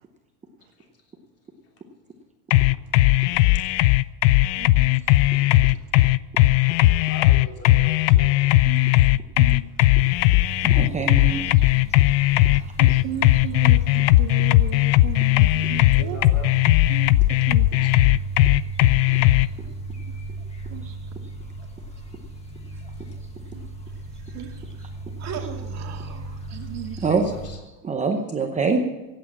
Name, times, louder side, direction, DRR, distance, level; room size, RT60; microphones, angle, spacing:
sound 1, 2.5-19.5, left 16 dB, 85° left, 0.7 m, -17 dB
voice 1, 4.6-5.0 5.3-5.4 8.6-8.9 9.4-9.7 11.7-11.9 12.8-16.2 16.9-17.1 17.5-17.9 19.1-19.3 20.7-20.9 24.3-24.5 26.5-27.0, right 11 dB, 60° right, 4 dB, 1.3 m, -35 dB
voice 2, 7.0-8.4 15.9-16.6 17.8-17.9 27.1-27.6, left 1 dB, 30° left, 1 dB, 3.1 m, -39 dB
sound 2, 10.0-27.6, right 3 dB, 15° left, 1.6 m, -35 dB
voice 3, 10.6-11.4 27.0-27.3 27.8-28.8, right 4 dB, 15° right, 3 dB, 0.9 m, -24 dB
voice 4, 24.3-24.9 25.2-27.1, right 7 dB, 35° right, 3 dB, 2.1 m, -40 dB
15.5 x 9.1 x 7.4 m, 1.1 s
cardioid pair, 160°, 49 cm